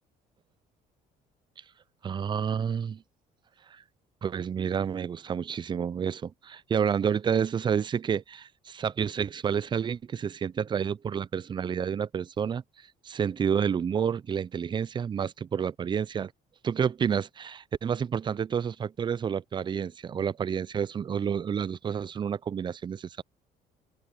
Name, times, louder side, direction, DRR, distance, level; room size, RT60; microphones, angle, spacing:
voice 1, 2.0-3.0 3.7-3.8 4.2-12.6 13.0-16.3 16.6-23.2, right 7 dB, 25° right, 0.4 m, -29 dB
open air
cardioid pair, 110°, 17 cm